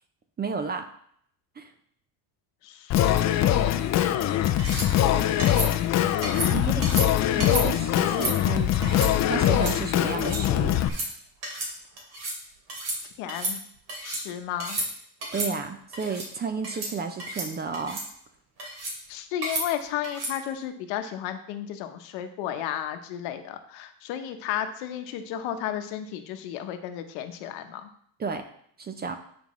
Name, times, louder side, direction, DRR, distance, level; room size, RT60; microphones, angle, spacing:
voice 1, 0.4-0.9 1.6-1.7 6.5-6.8 7.4-10.8 15.3-18.0 28.2-28.4 28.8-29.2, right 5 dB, 20° right, 7 dB, 0.5 m, -32 dB
voice 2, 2.6-3.9 4.3-5.2 5.6-6.2 6.5-8.2 13.2-13.6 14.0-14.8 19.1-27.9, left 10 dB, 85° left, 8 dB, 1.0 m, -34 dB
Singing, 2.9-10.9, left 12 dB, 40° left, 0.4 m, -23 dB
sound 1, 4.6-4.9 5.4-5.7 6.2-6.5 6.8-7.1 7.4-7.7 8.0-8.3 8.8-9.1 9.5-9.7 10.1-10.4 10.8-11.1 11.4-11.7 12.0-12.4 12.7-13.0 13.3-14.2 14.6-14.9 15.2-15.5 15.9-16.3 16.6-16.9 17.2-17.5 17.7-18.0 18.6-19.0 19.4-19.6 20.0-20.3, right 1 dB, 55° right, 3.2 m, -32 dB
9.3 x 5.2 x 3.1 m, 0.65 s
cardioid pair, 135°, 46 cm